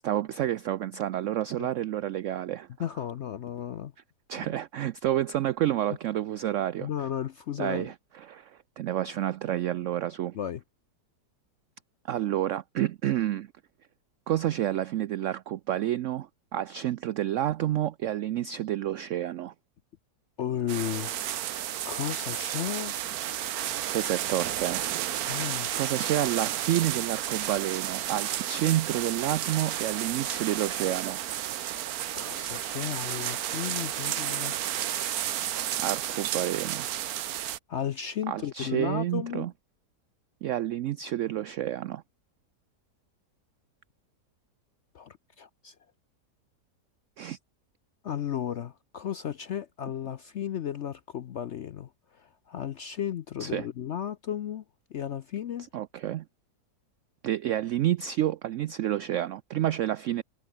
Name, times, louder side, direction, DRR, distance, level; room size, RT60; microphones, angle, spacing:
voice 1, 0.0-2.7 4.3-6.9 7.6-10.4 12.1-13.5 14.3-19.5 23.9-24.8 25.7-31.2 35.8-36.9 38.3-39.5 40.4-42.0 47.2-47.4 53.4-53.7 55.7-56.2 57.2-60.2, right 12 dB, 80° right, 0.6 m, -29 dB
voice 2, 2.8-3.9 6.8-7.9 10.3-10.6 20.4-21.1 21.8-22.9 25.3-25.7 32.1-34.6 37.7-39.5 44.9-45.7 48.0-51.9 52.2-54.6 54.9-55.7, left 10 dB, 65° left, 0.7 m, -34 dB
sound 1, 20.7-37.6, right 11 dB, 65° right, 1.2 m, -32 dB
sound 2, 22.3-27.5, left 1 dB, 30° left, 7.7 m, -67 dB
omnidirectional pair, 1.8 m